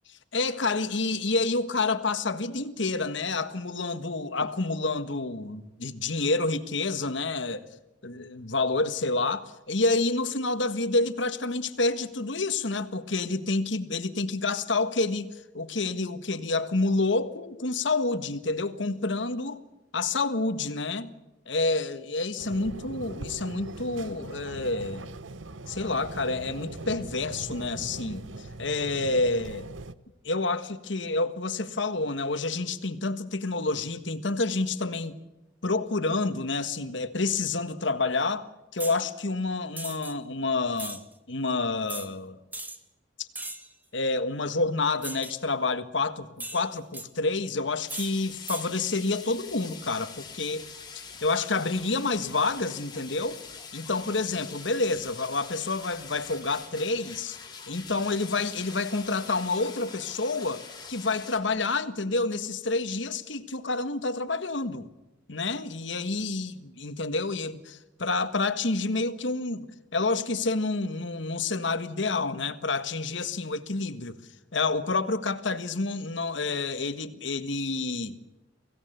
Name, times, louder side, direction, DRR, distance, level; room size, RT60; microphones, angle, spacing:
voice 1, 0.3-7.7 8.0-19.6 19.9-21.1 21.5-25.1 25.7-29.7 30.2-35.2 35.6-38.5 38.7-41.0 41.3-42.4 43.2-43.3 43.9-50.7 51.2-53.4 53.7-57.4 57.7-64.9 65.3-69.7 69.9-74.2 74.5-78.2, left 3 dB, 70° left, 1.6 m, -28 dB
sound 1, 22.4-29.9, right 2 dB, 85° right, 1.0 m, -41 dB
sound 2, 38.8-39.0 39.8-40.1 40.8-41.0 41.9-42.1 42.5-42.8 43.3-43.7 45.0-45.4 46.4-47.1 47.9-48.1 48.5-48.7, right 2 dB, 10° right, 1.7 m, -38 dB
sound 3, 47.9-61.4, left 5 dB, 25° left, 4.0 m, -44 dB
25.0 x 17.0 x 8.2 m
head